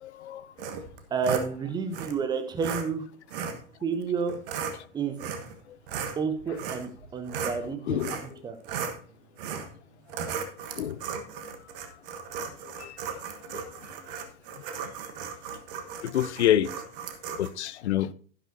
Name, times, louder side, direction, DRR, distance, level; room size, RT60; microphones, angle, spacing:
voice 1, 0.0-0.5 7.9-8.2 10.8-11.0 12.8-13.0 13.5-13.6 16.0-16.7 17.4-18.1, left 11 dB, 50° left, 0.6 m, -27 dB
sound 1, 0.6-1.5 1.9-2.1 2.6-2.8 3.3-3.6 4.3-4.8 5.2-5.6 5.9-7.6 8.0-8.3 8.6-9.0 9.4-9.7 10.1-17.5, right 6 dB, 40° right, 1.3 m, -35 dB
voice 2, 1.1-3.0 3.8-4.4 4.9-5.2 6.2-8.6, right 5 dB, 10° right, 0.7 m, -30 dB
11.5 x 11.0 x 2.7 m
figure-of-eight pair, 105°, 43 cm